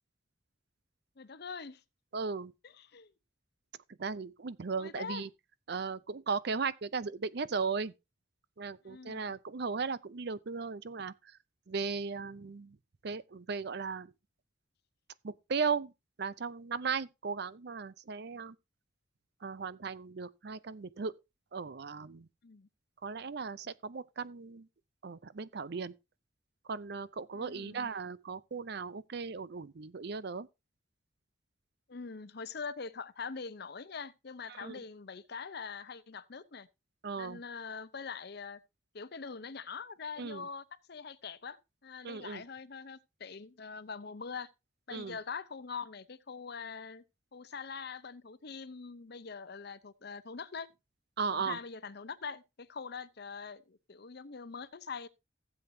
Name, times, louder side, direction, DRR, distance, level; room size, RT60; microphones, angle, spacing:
voice 1, 1.2-1.8 2.8-3.1 4.8-5.2 8.8-9.3 22.4-22.7 27.3-27.9 31.9-36.7 37.2-38.6 38.9-44.5 44.9-47.0 47.3-50.7 51.3-55.1, left 5 dB, 55° left, 0.7 m, -43 dB
voice 2, 2.1-2.5 4.0-5.3 5.7-7.9 8.6-11.1 11.7-12.8 13.0-14.1 15.2-15.9 16.2-18.6 19.4-21.1 21.5-22.3 23.0-24.7 25.0-25.9 26.7-30.5 34.5-34.8 37.0-37.4 40.2-40.5 42.0-42.4 44.9-45.2 51.2-51.6, right 5 dB, 60° right, 0.6 m, -36 dB
15.5 x 7.9 x 2.8 m
head